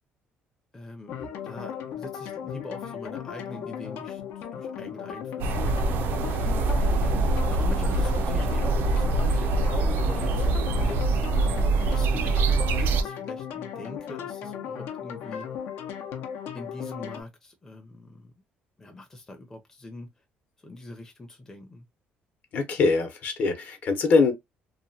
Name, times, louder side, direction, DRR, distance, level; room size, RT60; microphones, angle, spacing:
voice 1, 0.7-1.2 1.4-6.0 6.9-11.0 11.8-15.5 16.5-18.3 18.8-20.1 20.6-21.8, left 2 dB, 15° left, 0.5 m, -43 dB
sound 1, 1.1-17.2, left 8 dB, 80° left, 0.7 m, -37 dB
sound 2, 5.4-13.0, right 3 dB, 70° right, 0.5 m, -24 dB
voice 2, 22.5-24.3, left 4 dB, 50° left, 0.8 m, -23 dB
2.9 x 2.2 x 2.6 m
cardioid pair, 140°, 4 cm